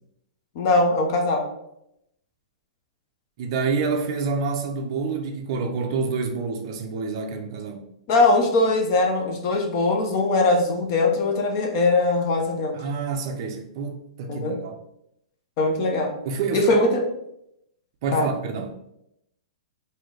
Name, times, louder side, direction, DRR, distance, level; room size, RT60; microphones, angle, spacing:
voice 1, 0.6-1.4 8.1-12.8 14.3-14.6 15.6-16.1 16.5-17.0 18.1-18.3, left 2 dB, 30° left, 3 dB, 0.5 m, -21 dB
voice 2, 3.4-7.8 12.7-14.8 16.3-16.9 18.0-18.7, right 4 dB, 35° right, 3 dB, 0.5 m, -27 dB
3.8 x 2.7 x 3.1 m, 0.81 s
hypercardioid pair, 170°, 4 cm